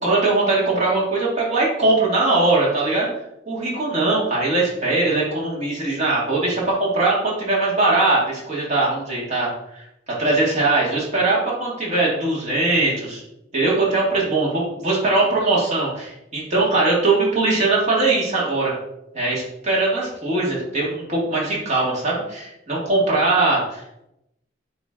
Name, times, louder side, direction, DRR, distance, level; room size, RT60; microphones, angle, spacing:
voice 1, 0.0-3.1 3.5-13.2 13.5-18.7 19.1-23.8, right 2 dB, 40° right, -5 dB, 2.4 m, -21 dB
8.7 x 3.2 x 3.8 m, 0.83 s
head